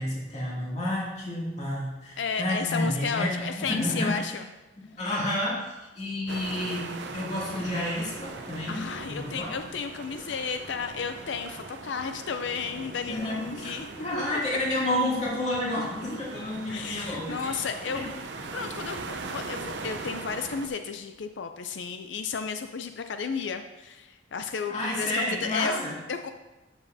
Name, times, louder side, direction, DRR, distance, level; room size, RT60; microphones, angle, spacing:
voice 1, 0.0-4.3 5.0-5.6 6.0-9.5 13.1-17.6 17.9-18.0 24.7-25.9, left 1 dB, 40° left, -5 dB, 2.5 m, -30 dB
voice 2, 2.2-4.4 8.7-13.9 16.7-18.0 18.5-25.8 26.1-26.3, left 5 dB, 75° left, 8 dB, 0.4 m, -33 dB
sound 1, 6.3-20.7, right 3 dB, 70° right, 0.7 m, -40 dB
12.0 x 7.2 x 2.7 m, 1.1 s
head